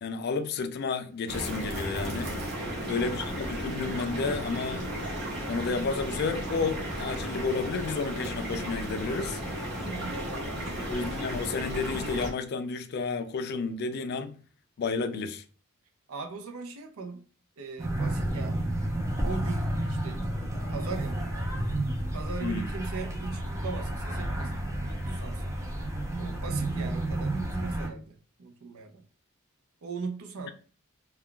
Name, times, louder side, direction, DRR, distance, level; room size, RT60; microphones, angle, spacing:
voice 1, 0.0-2.3 2.8-4.8 5.5-9.4 10.8-14.4 14.8-15.4 22.4-22.7, left 4 dB, 50° left, 0.3 m, -31 dB
sound 1, 1.3-12.3, equal, 50° right, 0.9 m, -34 dB
voice 2, 2.5-3.1 9.8-10.9 16.1-17.2 17.6-18.6 19.2-20.2 20.7-21.7 22.1-25.5 26.2-29.0 29.8-30.5, right 4 dB, 85° right, 0.5 m, -39 dB
sound 2, 17.8-27.9, right 1 dB, 15° right, 0.6 m, -31 dB
2.3 x 2.2 x 3.7 m
head